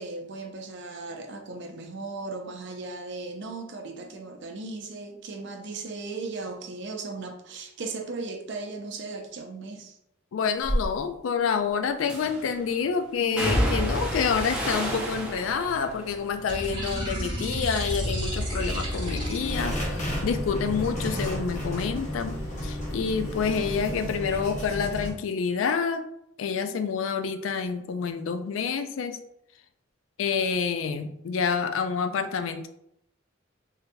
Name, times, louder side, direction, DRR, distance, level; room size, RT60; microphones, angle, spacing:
voice 1, 0.0-10.0, right 3 dB, 65° right, 4 dB, 0.5 m, -37 dB
voice 2, 10.3-26.1 26.4-29.2 30.2-32.7, left 6 dB, 90° left, 9 dB, 0.4 m, -28 dB
sound 1, 10.6-10.9 12.1-12.6 13.4-17.6 17.9-18.5 18.9-22.2 22.5-23.6 23.9-24.0, equal, 5° right, 0.6 m, -31 dB
sound 2, 16.5-19.8, equal, 25° right, 1.1 m, -31 dB
sound 3, 17.8-25.1, equal, 40° left, 0.9 m, -33 dB
3.9 x 2.7 x 2.2 m, 0.76 s
head